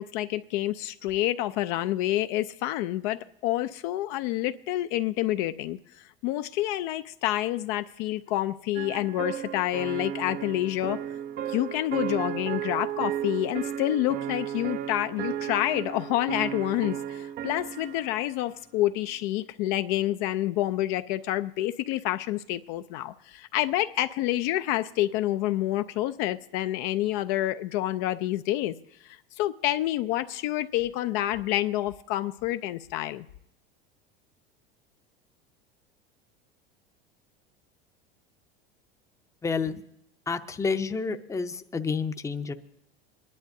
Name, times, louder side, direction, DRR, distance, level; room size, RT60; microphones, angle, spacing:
voice 1, 0.0-11.0 11.5-28.7 29.0-33.3, left 14 dB, 55° left, 0.4 m, -28 dB
sound 1, 8.7-18.2, right 10 dB, 35° right, 0.4 m, -34 dB
voice 2, 39.4-39.8 40.3-42.5, left 5 dB, 10° left, 0.6 m, -29 dB
25.5 x 10.5 x 2.6 m
hypercardioid pair, 90°, 29 cm